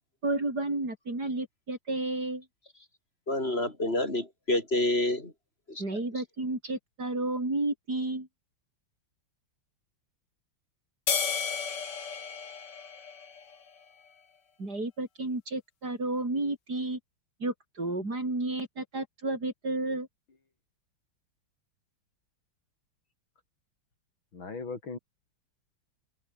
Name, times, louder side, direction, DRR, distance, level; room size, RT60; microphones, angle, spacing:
voice 1, 0.2-2.4 5.8-8.3 14.6-17.0 17.4-20.1, right 2 dB, 50° right, 7.1 m, -32 dB
voice 2, 3.3-5.3 5.7-5.8, left 1 dB, 30° left, 4.5 m, -28 dB
sound 1, 11.1-13.7, left 6 dB, 60° left, 2.7 m, -33 dB
voice 3, 24.3-25.0, left 4 dB, 80° left, 4.9 m, -38 dB
omnidirectional pair, 2.1 m